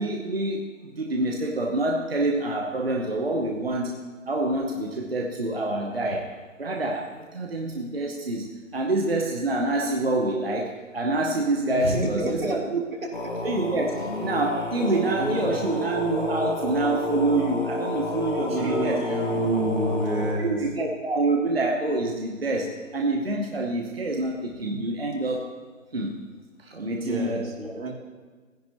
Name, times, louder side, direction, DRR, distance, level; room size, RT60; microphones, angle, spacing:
voice 1, 0.0-3.9 4.3-6.3 6.6-8.5 8.7-12.8 13.4-19.0 20.4-25.5 25.9-26.1 26.6-27.8, right 2 dB, 45° right, 1 dB, 0.9 m, -27 dB
voice 2, 11.7-12.6 13.0-13.1 15.2-15.7 18.5-20.6 24.7-24.8 27.0-27.9, right 2 dB, 80° right, -2 dB, 3.0 m, -28 dB
sound 1, 13.1-20.3, left 2 dB, 40° left, 1.4 m, -30 dB
17.0 x 10.5 x 3.0 m, 1.4 s
hypercardioid pair, 180°, 40 cm